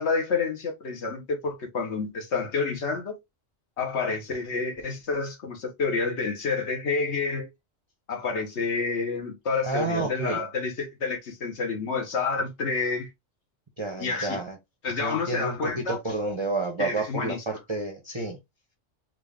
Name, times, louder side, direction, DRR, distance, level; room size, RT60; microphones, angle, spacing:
voice 1, 0.0-3.1 3.8-7.5 8.1-13.1 14.0-14.4 14.8-16.0 16.8-17.4, left 4 dB, 65° left, 1.3 m, -29 dB
voice 2, 9.6-10.4 13.8-14.6 15.0-18.4, right 2 dB, 30° right, 0.6 m, -30 dB
3.8 x 2.4 x 3.4 m
omnidirectional pair, 1.3 m